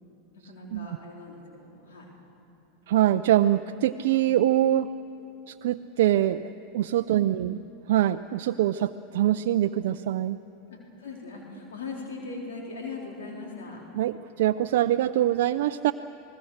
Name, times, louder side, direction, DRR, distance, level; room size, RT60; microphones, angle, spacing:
voice 1, 0.3-2.1 7.2-7.5 10.7-13.8, left 3 dB, 80° left, -1 dB, 4.0 m, -40 dB
voice 2, 2.9-4.9 5.5-7.6 7.9-10.4 14.0-15.9, right 13 dB, 70° right, 8 dB, 0.4 m, -24 dB
28.5 x 19.5 x 6.5 m, 2.8 s
hypercardioid pair, 100°, 0 cm